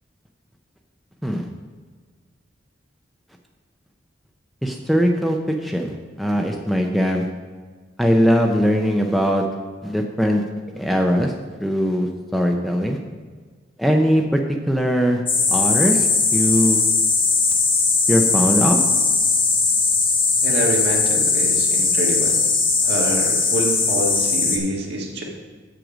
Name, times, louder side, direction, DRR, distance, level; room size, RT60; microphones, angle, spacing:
voice 1, 4.6-7.3 8.0-9.4 9.8-10.4 10.7-11.3 11.6-13.0 13.8-14.4 14.7-15.2 15.5-16.8 18.1-18.8, equal, ahead, 2 dB, 0.5 m, -20 dB
sound 1, 15.3-24.6, left 4 dB, 30° left, 1.1 m, -19 dB
voice 2, 20.4-22.4 22.8-25.2, right 1 dB, 60° right, -1 dB, 1.7 m, -26 dB
7.8 x 7.5 x 5.0 m, 1.5 s
head